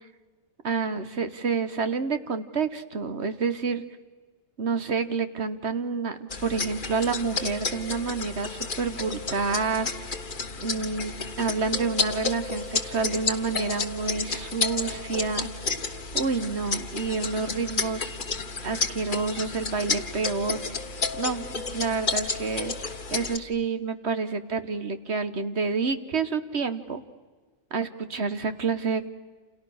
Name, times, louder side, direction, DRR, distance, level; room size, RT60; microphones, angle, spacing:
voice 1, 0.6-3.8 4.6-9.9 10.6-15.5 16.1-18.2 18.6-20.8 21.2-22.7 23.1-27.0 27.7-29.1, right 4 dB, 55° right, 11 dB, 1.5 m, -28 dB
sound 1, 6.3-23.4, left 4 dB, 40° left, 1.4 m, -31 dB
29.0 x 28.5 x 6.5 m, 1.4 s
omnidirectional pair, 1.4 m